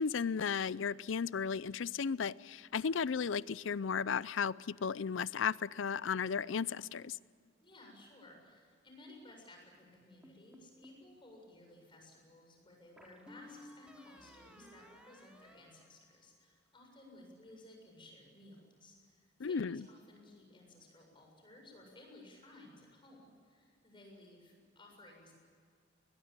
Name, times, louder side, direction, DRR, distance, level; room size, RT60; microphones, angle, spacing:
voice 1, 0.0-7.2 19.4-19.8, left 6 dB, 70° left, 20 dB, 0.5 m, -35 dB
voice 2, 7.6-25.3, left 1 dB, 25° left, 1 dB, 7.3 m, -57 dB
sound 1, 10.2-11.1 13.0-16.6, left 1 dB, 5° right, 3.1 m, -58 dB
21.5 x 21.0 x 8.8 m, 2.2 s
head